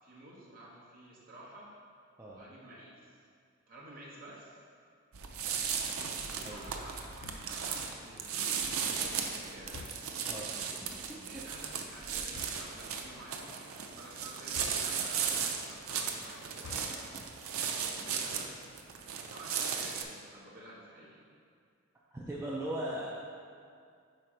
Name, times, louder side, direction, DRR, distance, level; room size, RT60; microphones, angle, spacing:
voice 1, 0.0-1.7 2.3-3.1 3.7-4.6 6.3-9.9 11.3-17.5 18.0-18.6 19.3-21.3, right 1 dB, 45° right, -6 dB, 1.2 m, -51 dB
sound 1, 5.1-20.0, right 6 dB, 90° right, 0.5 m, -36 dB
sound 2, 7.1-7.7 9.7-10.3 12.2-12.8 14.5-15.3 16.5-17.2, left 5 dB, 60° left, 0.3 m, -49 dB
voice 2, 10.3-10.8 11.1-11.4 22.1-23.1, right 1 dB, 15° right, -7 dB, 0.5 m, -39 dB
4.5 x 4.2 x 5.1 m, 2.3 s
head